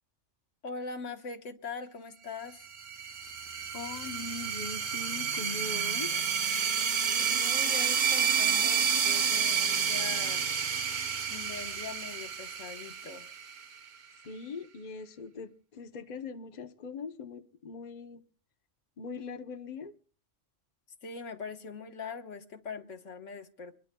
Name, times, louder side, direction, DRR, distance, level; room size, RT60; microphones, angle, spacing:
voice 1, 0.6-2.7 7.2-10.5 11.3-13.3 21.0-23.7, left 4 dB, 80° left, 1.6 m, -42 dB
sound 1, 2.6-13.9, right 7 dB, 45° right, 0.9 m, -30 dB
voice 2, 3.7-6.2 14.2-18.2 19.0-19.9, left 4 dB, 40° left, 0.9 m, -41 dB
25.0 x 22.0 x 2.2 m
omnidirectional pair, 1.2 m